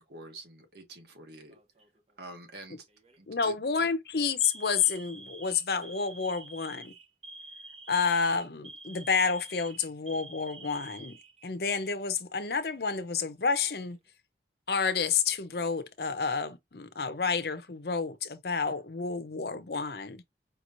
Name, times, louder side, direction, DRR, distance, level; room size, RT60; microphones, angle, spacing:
voice 1, 0.0-1.6 2.2-2.9 3.2-3.5 3.8-3.9, right 2 dB, 65° right, 1.5 m, -47 dB
Alarm, 1.5-2.0 2.9-3.2 3.6-3.8 4.4-11.9 12.2-12.4 13.3-14.0, right 2 dB, 35° right, 0.7 m, -49 dB
voice 2, 3.3-6.9 7.9-11.2 11.4-14.0 14.7-20.2, left 5 dB, 60° left, 0.7 m, -30 dB
5.1 x 3.1 x 2.5 m
head